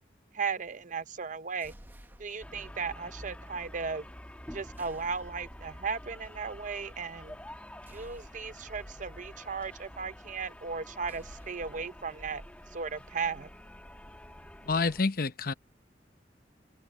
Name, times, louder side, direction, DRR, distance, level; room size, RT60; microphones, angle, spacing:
voice 1, 0.3-1.7 2.2-4.1 4.5-7.4 7.9-12.4 12.7-13.5, right 5 dB, 45° right, 0.7 m, -36 dB
sound 1, 1.6-2.7 4.7-5.8 7.8-8.9 11.0-12.5, equal, 10° right, 1.1 m, -52 dB
sound 2, 2.4-15.0, left 1 dB, 10° left, 1.2 m, -48 dB
voice 2, 14.6-15.5, left 4 dB, 50° left, 0.8 m, -28 dB
open air
head